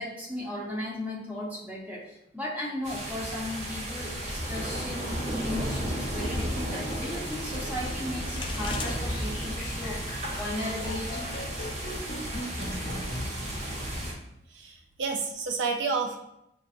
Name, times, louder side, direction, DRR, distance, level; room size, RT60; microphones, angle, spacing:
voice 1, 0.0-11.3, left 1 dB, 10° right, -5 dB, 0.8 m, -36 dB
sound 1, 2.8-14.1, equal, 40° right, 0.9 m, -33 dB
sound 2, 5.5-11.3, left 4 dB, 25° left, 0.3 m, -45 dB
sound 3, 8.8-13.2, left 1 dB, 45° left, 0.8 m, -38 dB
voice 2, 13.2-13.8 14.5-16.2, right 4 dB, 75° right, 3 dB, 0.4 m, -31 dB
6.0 x 2.6 x 2.5 m, 0.82 s
head